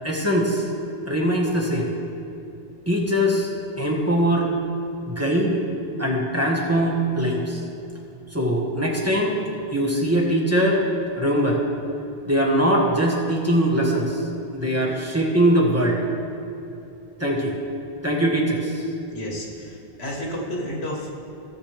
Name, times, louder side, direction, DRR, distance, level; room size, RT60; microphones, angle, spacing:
voice 1, 0.0-0.7 1.1-1.9 2.9-3.5 3.8-4.5 5.0-5.6 6.0-7.6 8.3-9.4 9.7-10.8 11.1-11.6 12.3-14.3 14.5-16.0 17.2-17.6 18.0-18.9, equal, 15° right, -3 dB, 1.3 m, -21 dB
voice 2, 19.1-21.1, equal, 90° left, -2 dB, 2.1 m, -31 dB
16.0 x 7.2 x 3.4 m, 2.9 s
omnidirectional pair, 1.0 m